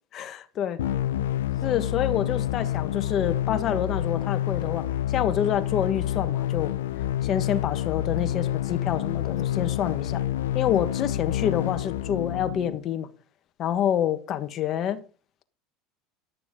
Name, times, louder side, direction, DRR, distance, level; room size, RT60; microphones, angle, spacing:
voice 1, 0.1-0.8 1.6-6.7 7.2-10.2 10.5-13.1 13.6-15.0, left 9 dB, 50° left, 1.4 m, -27 dB
sound 1, 0.8-12.8, left 12 dB, 90° left, 0.7 m, -28 dB
11.5 x 6.9 x 5.1 m
hypercardioid pair, 95°, 0 cm